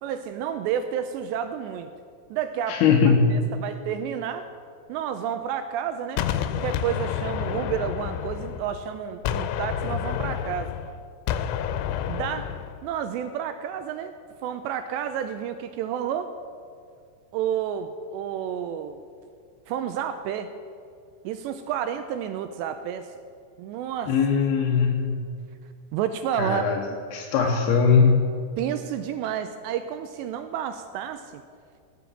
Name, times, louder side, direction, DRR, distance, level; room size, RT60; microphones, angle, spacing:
voice 1, 0.0-1.9 2.3-2.9 3.3-4.5 4.9-6.2 6.6-10.8 12.1-12.5 12.8-14.1 14.4-16.3 17.3-19.0 19.7-20.5 21.2-23.1 23.6-24.2 25.9-27.0 28.6-31.4, right 9 dB, 85° right, 9 dB, 2.5 m, -30 dB
voice 2, 2.7-3.5 24.1-25.4 26.4-28.4, left 5 dB, 75° left, 1 dB, 2.4 m, -21 dB
Gunshot gunfire, 6.2-8.9 9.3-12.8, left 9 dB, 90° left, 3.1 m, -29 dB
18.5 x 7.7 x 7.2 m, 2.3 s
omnidirectional pair, 5.5 m